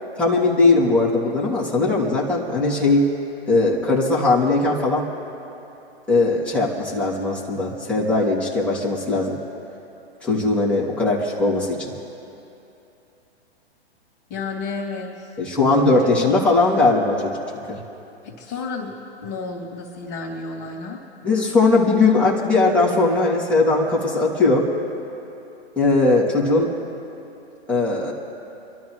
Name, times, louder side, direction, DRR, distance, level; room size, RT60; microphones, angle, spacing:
voice 1, 0.2-3.0 3.5-5.1 6.1-9.4 10.2-11.9 15.4-17.3 17.7-17.8 21.2-24.7 25.8-26.7 27.7-28.1, left 3 dB, 5° left, -7 dB, 2.8 m, -19 dB
voice 2, 14.3-15.3 15.6-16.4 18.2-18.9 19.2-21.0, left 4 dB, 30° left, 0 dB, 2.8 m, -32 dB
27.5 x 12.5 x 3.2 m, 2.8 s
hypercardioid pair, 125°, 32 cm